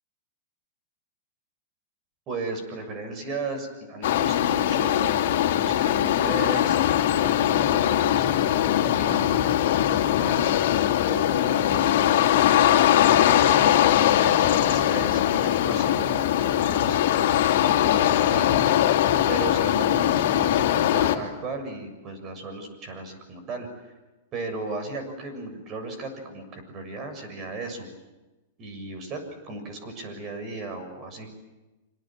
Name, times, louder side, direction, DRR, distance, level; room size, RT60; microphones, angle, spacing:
voice 1, 2.3-9.6 10.2-10.7 11.0-12.2 12.9-13.4 14.2-17.0 17.6-18.6 19.3-23.9 24.3-27.9 28.6-31.3, right 3 dB, 30° right, 6 dB, 7.0 m, -36 dB
sound 1, 4.0-21.2, left 11 dB, 60° left, 3.2 m, -21 dB
27.0 x 26.5 x 7.7 m, 1.1 s
supercardioid pair, 155°, 0 cm